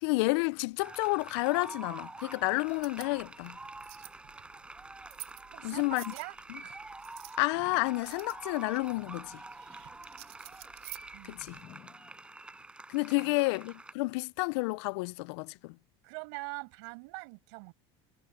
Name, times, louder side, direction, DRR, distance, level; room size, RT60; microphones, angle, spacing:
voice 1, 0.0-3.6 5.6-6.1 7.4-9.4 11.3-11.6 12.9-15.8, left 25 dB, 75° left, 0.4 m, -30 dB
sound 1, 0.8-13.9, right 2 dB, 5° right, 7.4 m, -47 dB
sound 2, 2.7-11.6, right 17 dB, 50° right, 2.9 m, -52 dB
sound 3, 5.4-7.0 7.5-12.7 13.2-13.3 14.2-14.3, left 13 dB, 35° left, 7.5 m, -59 dB
voice 2, 5.5-6.4 6.6-6.8 11.1-11.4 13.2-13.4 16.0-17.7, right 34 dB, 70° right, 7.1 m, -43 dB
cardioid pair, 160°, 14 cm